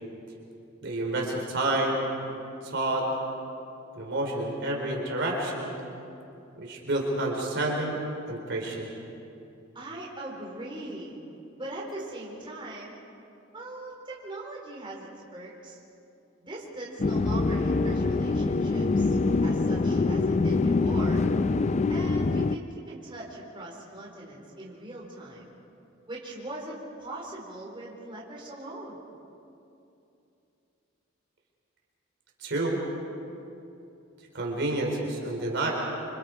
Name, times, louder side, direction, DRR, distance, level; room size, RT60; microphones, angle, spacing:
voice 1, 0.8-2.1 2.6-3.1 3.9-5.7 6.6-8.0 8.3-8.9 32.4-32.8 34.3-35.7, right 2 dB, 60° right, -1 dB, 4.2 m, -29 dB
voice 2, 9.7-11.2 11.6-13.0 13.5-15.8 16.4-19.2 19.4-21.2 21.9-25.5 26.1-29.0, right 1 dB, 25° right, -4 dB, 4.5 m, -40 dB
sound 1, 17.0-22.6, left 3 dB, 35° left, 0.4 m, -24 dB
28.5 x 26.0 x 4.7 m, 2.7 s
head